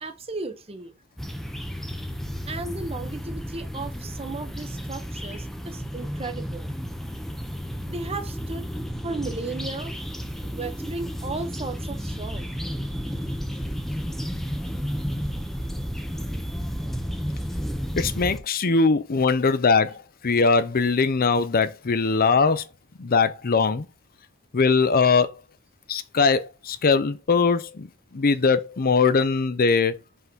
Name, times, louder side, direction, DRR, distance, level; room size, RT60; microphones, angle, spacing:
voice 1, 0.0-0.9 2.5-6.7 7.9-8.7 9.0-9.9 10.4-13.4 15.4-16.9 17.2-17.5, right 3 dB, 30° right, 0.9 m, -36 dB
sound 1, 1.2-18.4, equal, ahead, 0.7 m, -32 dB
voice 2, 18.0-22.7 23.0-23.9 24.5-25.3 25.9-30.0, left 4 dB, 45° left, 0.6 m, -21 dB
5.6 x 3.9 x 6.1 m
head